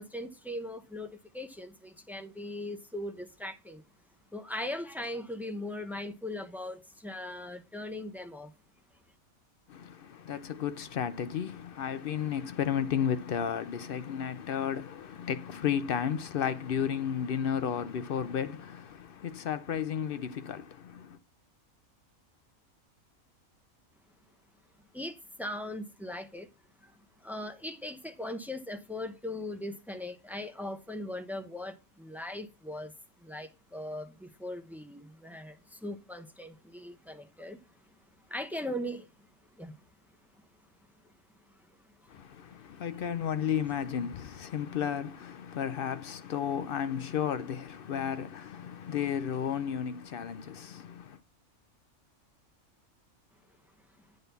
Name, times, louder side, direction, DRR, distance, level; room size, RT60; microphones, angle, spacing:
voice 1, 0.0-3.8 4.3-8.5 24.9-26.5 26.8-27.0 27.2-32.9 33.2-37.6 38.3-39.1 39.5-39.8 41.9-42.1, left 1 dB, ahead, 0.4 m, -39 dB
voice 2, 9.7-21.2 42.1-51.2, left 8 dB, 60° left, 0.6 m, -33 dB
8.8 x 3.9 x 6.7 m
omnidirectional pair, 1.5 m